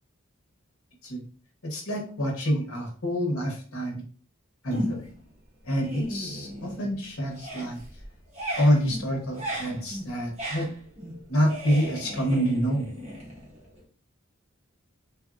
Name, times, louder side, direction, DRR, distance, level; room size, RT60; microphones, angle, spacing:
voice 1, 1.6-4.0 4.6-5.1 5.6-7.8 8.6-10.7 11.3-12.9, equal, 80° left, 0 dB, 1.0 m, -27 dB
sound 1, 4.7-5.3 5.6-7.0 7.3-13.8, equal, 30° right, 1.0 m, -36 dB
2.9 x 2.7 x 2.5 m, 0.42 s
head